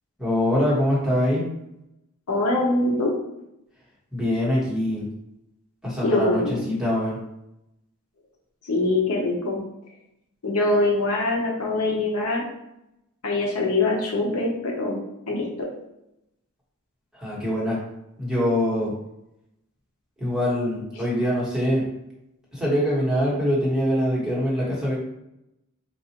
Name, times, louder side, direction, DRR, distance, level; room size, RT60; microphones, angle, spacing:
voice 1, 0.2-1.4 4.1-5.1 5.8-7.2 17.1-17.8 18.2-18.9 20.2-21.9 22.5-25.0, equal, 5° right, -7 dB, 1.2 m, -23 dB
voice 2, 2.3-3.1 6.0-6.6 8.6-9.6 10.4-12.4 13.2-15.7, left 2 dB, 80° left, -1 dB, 0.8 m, -23 dB
4.0 x 2.4 x 2.9 m, 0.85 s
head